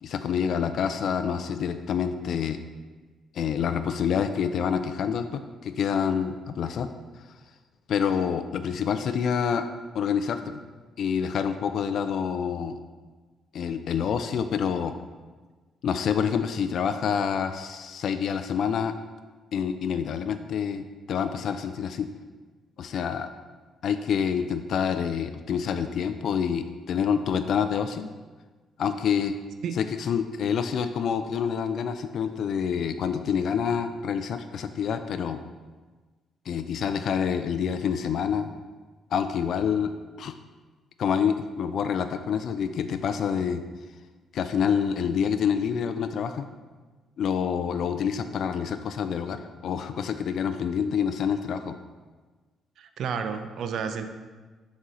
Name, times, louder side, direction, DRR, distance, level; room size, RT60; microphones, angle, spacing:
voice 1, 0.0-2.6 3.3-6.9 7.9-9.7 9.9-10.6 11.0-12.8 13.5-14.9 15.8-18.9 19.5-22.1 22.8-23.3 23.8-28.1 28.8-29.4 29.7-35.4 36.5-38.5 39.1-40.3 41.0-43.6 44.3-46.5 47.2-51.8, left 7 dB, 65° left, 9 dB, 0.3 m, -27 dB
voice 2, 52.8-54.1, right 6 dB, 70° right, 8 dB, 0.4 m, -31 dB
6.1 x 4.1 x 3.8 m, 1.3 s
cardioid pair, 90°, 0 cm